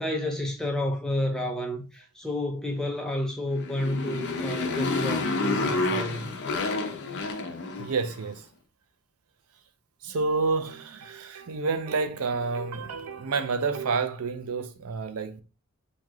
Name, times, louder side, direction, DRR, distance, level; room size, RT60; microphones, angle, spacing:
voice 1, 0.0-6.3, left 1 dB, 5° left, 0.5 m, -30 dB
Motorcycle, 3.5-8.2, left 3 dB, 50° left, 0.6 m, -29 dB
voice 2, 7.8-8.5 10.0-15.4, right 4 dB, 75° right, 0.5 m, -29 dB
3.1 x 2.8 x 3.5 m
head